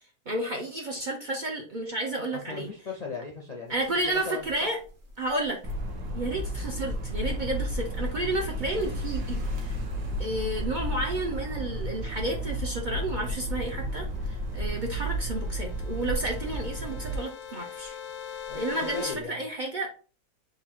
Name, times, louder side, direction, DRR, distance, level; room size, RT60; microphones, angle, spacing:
voice 1, 0.3-2.7 3.7-4.8 5.2-5.6 6.1-9.7 10.2-18.0 18.5-19.9, right 2 dB, 60° right, 2 dB, 0.5 m, -31 dB
voice 2, 2.3-3.7 4.0-4.5 6.0-6.2 18.5-19.4, left 4 dB, 50° left, -1 dB, 0.5 m, -38 dB
sound 1, 3.7-19.3, equal, 35° right, 1.1 m, -44 dB
sound 2, 5.6-17.2, equal, 90° right, 1.6 m, -33 dB
sound 3, 14.2-19.2, left 9 dB, 90° left, 1.2 m, -42 dB
3.9 x 2.8 x 4.3 m, 0.37 s
omnidirectional pair, 1.7 m